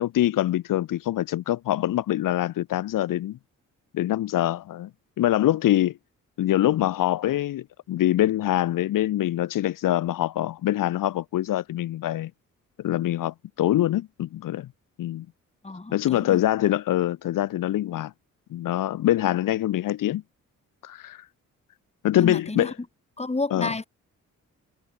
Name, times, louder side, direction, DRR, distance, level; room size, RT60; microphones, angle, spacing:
voice 1, 0.0-3.4 3.9-4.9 5.2-6.0 6.4-12.3 12.8-14.7 15.0-15.3 15.9-18.1 18.5-20.2 20.8-21.2 22.0-22.7 23.5-23.7, left 13 dB, 85° left, 1.1 m, -24 dB
voice 2, 15.6-16.4 22.1-22.7 23.2-23.9, left 3 dB, 20° left, 4.6 m, -30 dB
cardioid pair, 85°, 32 cm